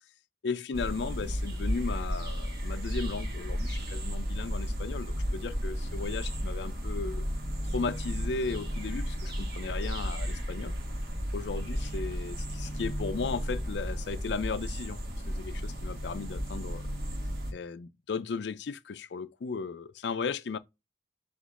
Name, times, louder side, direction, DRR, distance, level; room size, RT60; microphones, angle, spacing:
voice 1, 0.4-7.2 7.6-10.7 11.3-15.0 15.3-16.9 17.5-20.6, left 4 dB, 85° left, 0.4 m, -36 dB
sound 1, 0.7-17.5, equal, 55° right, 1.2 m, -33 dB
5.1 x 2.4 x 3.6 m
head